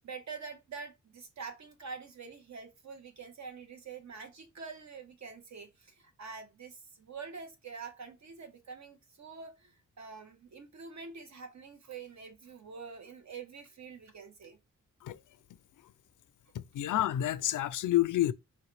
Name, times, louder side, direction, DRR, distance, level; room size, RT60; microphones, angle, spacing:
voice 1, 0.0-14.6, right 5 dB, 60° right, 1.2 m, -46 dB
voice 2, 16.5-18.3, left 13 dB, 75° left, 0.5 m, -29 dB
4.7 x 3.2 x 3.2 m
wide cardioid pair, 135°, 32 cm